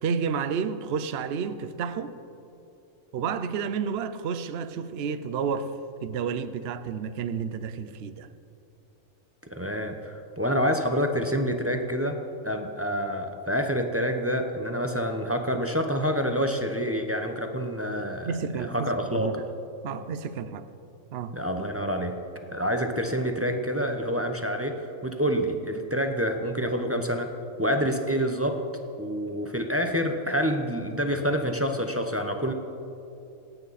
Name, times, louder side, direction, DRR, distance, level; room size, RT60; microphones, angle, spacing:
voice 1, 0.0-2.2 3.1-5.7 6.0-8.3 18.3-19.3 19.8-20.6 21.1-21.4, right 6 dB, 55° right, 11 dB, 0.9 m, -30 dB
voice 2, 9.5-12.2 12.4-19.3 21.3-22.2 22.5-24.8 25.0-27.3 27.6-28.6 29.0-32.5, equal, 15° right, 4 dB, 0.7 m, -27 dB
27.0 x 9.1 x 4.2 m, 2.8 s
omnidirectional pair, 1.4 m